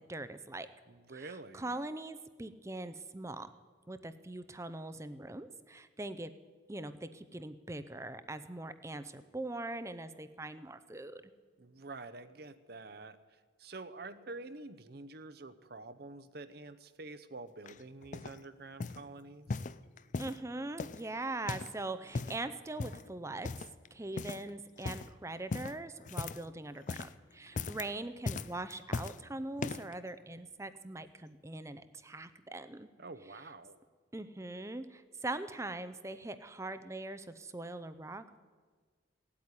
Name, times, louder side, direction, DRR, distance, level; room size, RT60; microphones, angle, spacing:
voice 1, 0.1-0.7 1.1-3.5 3.9-6.3 6.7-11.3 20.2-23.5 23.9-32.9 34.1-38.4, right 2 dB, 15° right, 12 dB, 0.5 m, -42 dB
voice 2, 0.9-1.8 11.6-19.6 33.0-33.8, right 3 dB, 55° right, 12 dB, 0.8 m, -48 dB
sound 1, 17.7-18.4 18.8-19.1 19.5-20.4 20.8-21.8 22.0-22.4 22.8-23.1 23.4-23.9 24.2-24.5 24.8-25.1 25.5-26.5 26.8-27.2 27.5-27.9 28.3-29.2 29.6-30.0 30.6-30.7, left 3 dB, 40° left, 0.4 m, -39 dB
17.5 x 8.6 x 9.7 m, 1.5 s
head